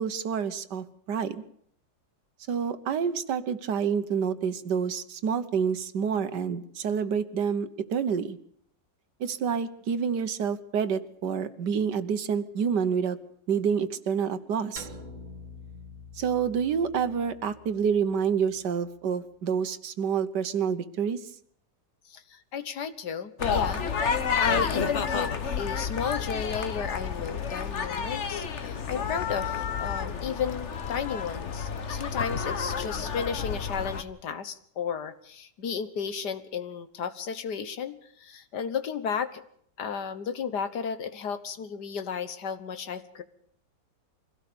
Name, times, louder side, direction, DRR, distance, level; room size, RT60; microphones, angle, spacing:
voice 1, 0.0-1.4 2.5-8.4 9.2-13.2 13.5-14.9 16.2-21.2, right 7 dB, 70° right, 11 dB, 1.7 m, -28 dB
sound 1, 14.8-19.1, left 2 dB, 30° right, 1.3 m, -47 dB
voice 2, 22.1-24.1 24.4-25.3 25.6-39.4 39.8-43.2, left 7 dB, 65° left, 12 dB, 1.8 m, -33 dB
sound 2, 23.4-34.0, left 6 dB, 45° left, 1.4 m, -30 dB
23.5 x 17.0 x 7.0 m, 0.65 s
omnidirectional pair, 2.0 m